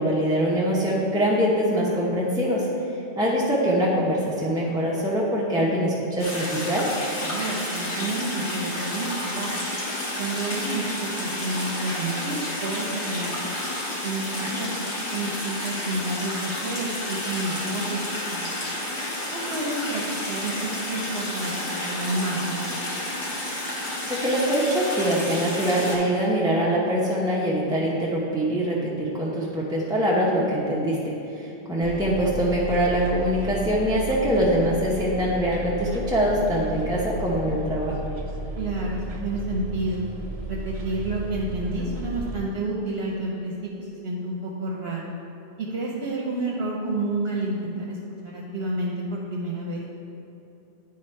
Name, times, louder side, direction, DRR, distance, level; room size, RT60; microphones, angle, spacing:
voice 1, 0.0-2.7 3.2-7.0 24.1-38.0, equal, 5° right, -6 dB, 0.6 m, -23 dB
sound 1, 6.2-26.0, left 1 dB, 90° left, 1.7 m, -31 dB
voice 2, 7.2-9.5 10.2-13.3 14.0-14.7 15.1-18.0 18.3-18.5 19.2-20.0 20.3-21.5 21.8-22.8 31.8-31.9 38.5-40.0 40.5-45.1 45.6-48.0 48.2-49.8, right 2 dB, 65° right, -3 dB, 0.9 m, -30 dB
Bus, 31.8-42.4, right 1 dB, 45° right, 0.5 m, -34 dB
9.7 x 3.7 x 4.4 m, 2.9 s
omnidirectional pair, 1.1 m